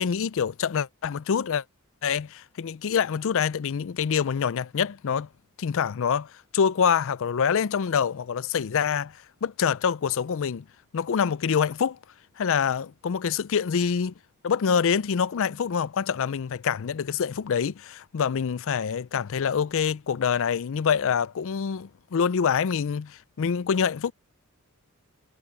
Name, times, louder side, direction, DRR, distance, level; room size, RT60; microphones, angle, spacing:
voice 1, 0.0-1.6 2.0-5.3 5.6-10.6 10.9-12.0 12.4-14.1 14.4-24.1, left 7 dB, 60° left, 0.4 m, -26 dB
head